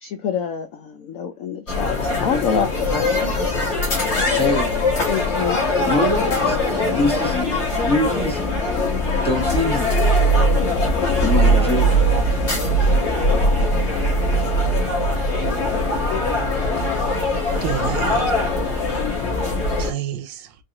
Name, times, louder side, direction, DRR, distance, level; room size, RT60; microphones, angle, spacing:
voice 1, 0.0-3.1 5.1-6.0, left 7 dB, 75° left, 0.7 m, -26 dB
sound 1, 1.7-19.9, left 1 dB, 40° left, 1.8 m, -20 dB
voice 2, 4.3-4.8 5.8-8.6 9.2-10.0 11.2-12.0, left 1 dB, 5° left, 0.8 m, -24 dB
voice 3, 16.8-17.3 17.6-18.4 19.4-19.5 19.8-20.6, right 10 dB, 90° right, 1.3 m, -30 dB
4.5 x 2.5 x 2.9 m
omnidirectional pair, 1.9 m